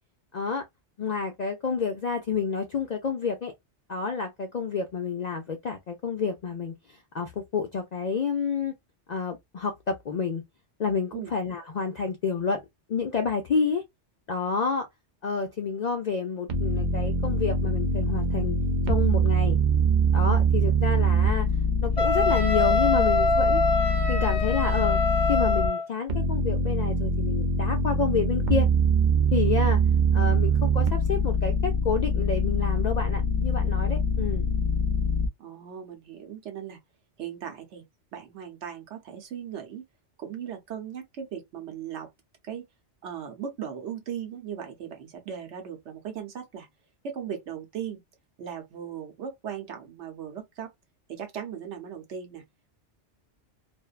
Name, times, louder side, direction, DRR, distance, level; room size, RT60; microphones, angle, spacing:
voice 1, 0.3-0.6 1.0-3.5 3.9-8.7 9.1-10.4 10.8-12.6 12.9-13.8 14.3-14.9 15.2-18.6 18.9-19.6 20.1-21.5 21.8-23.6 24.1-25.0 25.3-28.7 29.3-29.8 30.1-34.5, left 5 dB, 65° left, 0.4 m, -29 dB
sound 1, 16.5-25.7 26.1-35.3, right 1 dB, 55° right, 0.5 m, -24 dB
Wind instrument woodwind instrument, 22.0-25.9, left 2 dB, 20° left, 1.1 m, -24 dB
voice 2, 35.4-36.8 37.2-37.8 38.1-39.8 40.2-42.1 42.4-42.7 43.0-46.7 47.0-48.0 48.4-50.7 51.1-52.4, right 8 dB, 75° right, 1.1 m, -38 dB
2.5 x 2.1 x 2.3 m
omnidirectional pair, 1.2 m